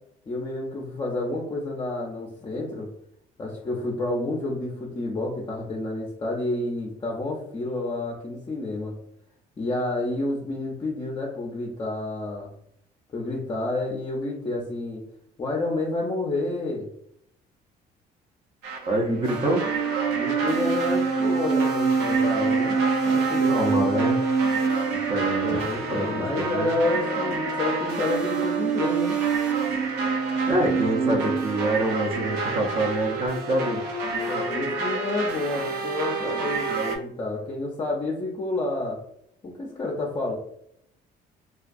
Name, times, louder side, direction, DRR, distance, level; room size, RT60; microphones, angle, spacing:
voice 1, 0.3-2.9 3.4-8.9 9.6-12.5 13.1-15.0 15.4-16.9 19.1-19.2 20.2-22.8 23.0-24.1 25.4-29.2 31.0-31.2 34.1-39.0 39.4-40.3, left 2 dB, 25° left, -1 dB, 0.5 m, -29 dB
sound 1, 18.6-37.0, right 4 dB, 85° right, 0.5 m, -26 dB
voice 2, 18.9-19.6 23.5-24.2 25.1-26.7 30.5-33.8, right 1 dB, 35° right, 3 dB, 0.6 m, -26 dB
2.3 x 2.3 x 2.5 m, 0.72 s
cardioid pair, 110°, 17 cm